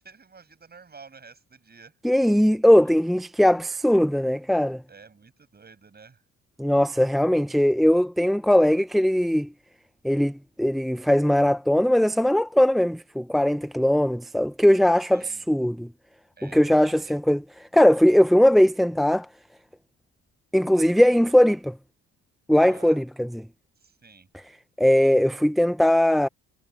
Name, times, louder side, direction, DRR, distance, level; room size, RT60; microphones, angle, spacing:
voice 1, 0.0-1.9 4.9-6.2 15.1-15.4 16.4-17.2 22.5-23.0 23.8-24.3, right 5 dB, 30° right, 6.5 m, -50 dB
voice 2, 2.0-4.8 6.6-9.5 10.0-15.9 16.4-19.3 20.5-21.7 22.5-23.4 24.8-26.3, equal, ahead, 0.6 m, -20 dB
cardioid pair, 90°, 30 cm